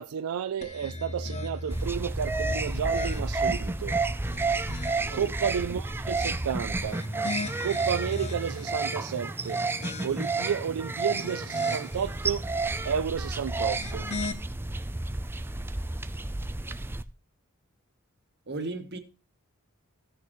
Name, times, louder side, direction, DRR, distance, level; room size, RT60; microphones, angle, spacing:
voice 1, 0.0-4.0 5.1-7.0 7.6-9.6 10.0-12.5 12.8-14.1, right 7 dB, 90° right, 0.4 m, -32 dB
sound 1, 0.6-1.9 2.4-3.6 4.1-5.2 6.7-8.8 9.3-10.5 10.9-12.1 13.5-14.3, left 2 dB, 30° left, 0.7 m, -38 dB
sound 2, 1.7-17.0, right 3 dB, 10° right, 0.4 m, -31 dB
voice 2, 18.5-19.0, right 2 dB, 50° right, 1.3 m, -35 dB
15.5 x 6.4 x 3.1 m
head